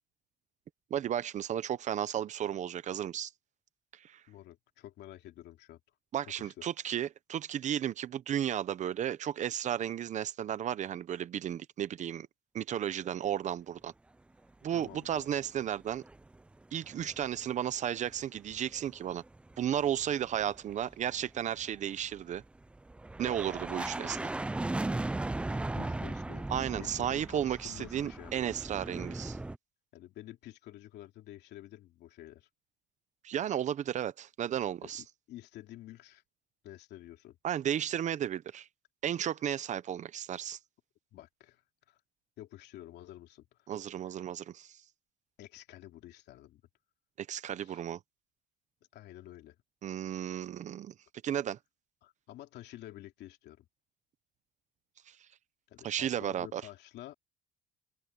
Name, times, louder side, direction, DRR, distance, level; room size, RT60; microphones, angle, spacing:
voice 1, 0.9-3.3 3.9-4.2 6.1-12.3 12.5-13.9 14.6-16.0 16.7-19.2 19.6-22.4 23.2-24.3 26.5-29.4 33.2-35.0 37.4-38.7 39.0-40.6 43.7-44.8 47.2-48.0 49.8-50.9 51.2-51.6 55.1-55.2 55.8-56.6, right 10 dB, 40° right, 0.8 m, -34 dB
voice 2, 4.3-5.8 6.4-6.7 14.7-15.2 25.7-28.5 29.9-32.5 34.8-36.2 36.6-37.4 41.1-42.0 42.4-43.5 45.4-46.6 47.6-47.8 48.9-49.6 52.0-53.7 55.7-57.1, left 14 dB, 65° left, 2.9 m, -50 dB
sound 1, 15.4-16.4 16.6-17.5 17.8-29.6, right 2 dB, 5° right, 0.4 m, -38 dB
open air
cardioid pair, 145°, 19 cm